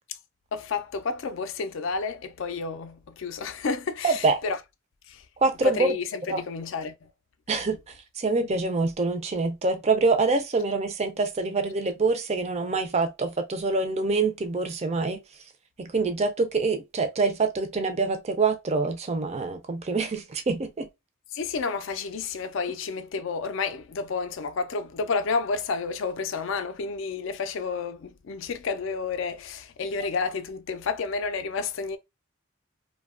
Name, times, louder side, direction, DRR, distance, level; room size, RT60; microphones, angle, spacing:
voice 1, 0.5-4.6 5.1-5.3 5.6-7.1 21.3-32.0, left 4 dB, 65° left, 0.4 m, -30 dB
voice 2, 4.0-4.4 5.4-5.9 6.3-6.4 7.5-7.8 8.2-15.2 15.8-20.9, right 3 dB, 30° right, 0.4 m, -25 dB
2.7 x 2.2 x 2.4 m
head